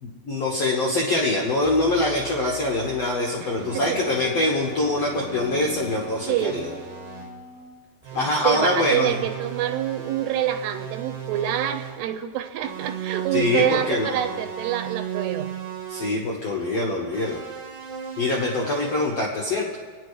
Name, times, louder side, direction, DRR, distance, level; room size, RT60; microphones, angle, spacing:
voice 1, 0.2-6.8 8.1-9.1 13.3-14.4 15.9-17.4 18.2-19.8, left 2 dB, 70° left, -3 dB, 1.5 m, -24 dB
sound 1, 1.6-3.2 3.6-7.4 8.0-12.1 12.6-16.2 17.1-19.1, right 8 dB, 60° right, 3.0 m, -36 dB
Wind instrument woodwind instrument, 2.8-7.7, left 4 dB, 50° left, 4.0 m, -45 dB
voice 2, 3.4-4.0 6.3-6.7 8.1-15.5, right 11 dB, 85° right, 7 dB, 2.8 m, -27 dB
24.5 x 10.0 x 3.2 m, 1.5 s
omnidirectional pair, 4.8 m